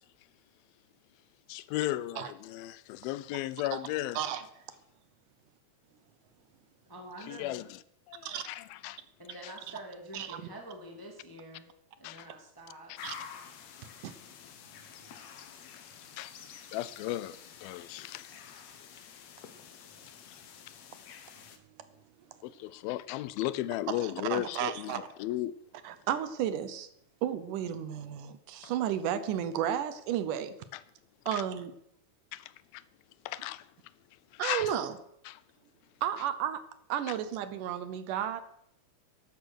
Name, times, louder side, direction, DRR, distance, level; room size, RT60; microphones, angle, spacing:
voice 1, 1.5-4.2 7.3-7.8 8.1-9.0 12.0-12.3 16.2-16.3 16.7-18.3 22.4-25.6 30.7-30.8 31.3-31.4 32.3-32.8 33.3-33.7 34.3-34.7 35.3-35.4 37.1-37.2, left 15 dB, 90° left, 2.5 m, -35 dB
voice 2, 6.9-7.6 9.2-11.7 12.0-13.0, right 1 dB, 10° left, 1.5 m, -47 dB
sound 1, 13.0-21.6, left 7 dB, 60° left, 2.1 m, -49 dB
voice 3, 23.9-25.1 25.8-26.9 27.2-30.5 31.3-31.7 34.4-34.9 36.0-36.6 36.9-38.4, right 10 dB, 75° right, 2.2 m, -33 dB
13.0 x 11.5 x 6.4 m
omnidirectional pair, 4.2 m